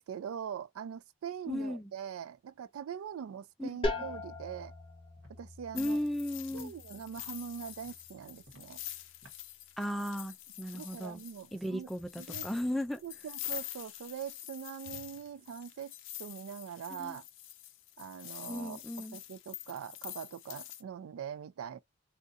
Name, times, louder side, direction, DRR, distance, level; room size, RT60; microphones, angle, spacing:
voice 1, 0.0-4.7 5.4-6.0 6.5-8.8 10.7-11.9 12.2-12.4 13.0-17.2 18.0-21.8, right 8 dB, 85° right, 0.3 m, -42 dB
voice 2, 1.5-1.8 3.6-3.7 5.7-6.7 9.8-11.2 11.5-13.0 16.9-17.2 18.5-19.2, left 1 dB, ahead, 0.3 m, -35 dB
sound 1, 3.8-9.4, left 2 dB, 25° left, 0.9 m, -41 dB
Walk footsteps, 4.5-4.7 5.2-5.3 5.8-6.0 6.5-6.7 7.1-7.4 7.8-8.0 8.4-8.7 9.2-9.4, equal, 65° right, 1.2 m, -58 dB
sound 2, 5.8-20.8, left 13 dB, 65° left, 0.5 m, -46 dB
3.9 x 2.5 x 2.5 m
head